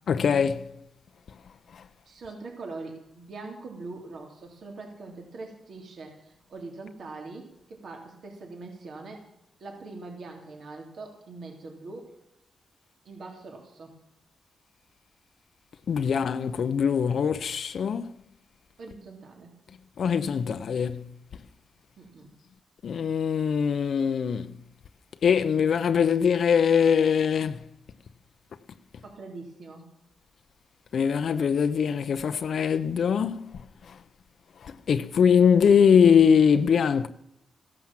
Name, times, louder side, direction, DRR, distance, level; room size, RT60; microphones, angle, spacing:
voice 1, 0.1-0.7 15.9-18.1 20.0-21.0 22.8-24.5 25.2-27.6 30.9-33.4 34.9-37.1, left 7 dB, 65° left, 0.8 m, -22 dB
voice 2, 2.0-9.3 9.6-12.1 13.0-14.0 18.8-19.5 22.0-22.3 29.0-29.9, right 3 dB, 65° right, 3.3 m, -42 dB
15.5 x 12.0 x 7.5 m
cardioid pair, 85°, 0 cm